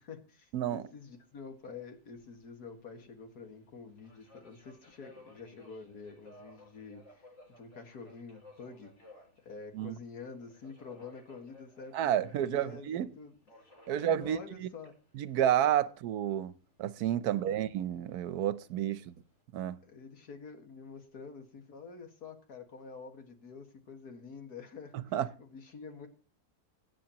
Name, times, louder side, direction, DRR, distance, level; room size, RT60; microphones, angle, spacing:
voice 1, 0.0-8.9 9.4-14.9 17.3-17.6 19.9-25.0 25.4-26.1, left 5 dB, 85° left, 2.2 m, -48 dB
Subway metro underground, 1.0-19.4, left 1 dB, 55° left, 5.7 m, -60 dB
voice 2, 11.9-13.1 13.9-14.4 15.1-19.1 19.5-19.8 24.9-25.3, right 11 dB, 80° right, 1.2 m, -30 dB
22.5 x 8.5 x 2.9 m
omnidirectional pair, 1.6 m